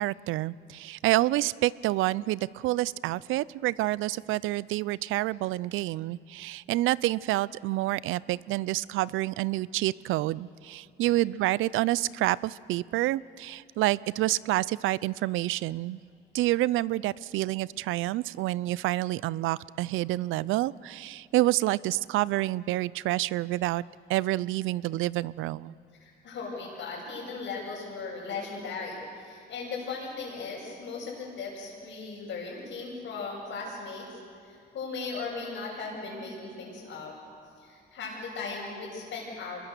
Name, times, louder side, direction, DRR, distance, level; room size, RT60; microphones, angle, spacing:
voice 1, 0.0-16.0 16.3-23.8 24.1-25.7, right 17 dB, 90° right, 22 dB, 0.5 m, -28 dB
voice 2, 26.0-34.1 34.4-37.1 37.6-39.6, left 4 dB, 75° left, -8 dB, 6.6 m, -37 dB
25.5 x 22.0 x 6.6 m, 2.5 s
cardioid pair, 90°, 20 cm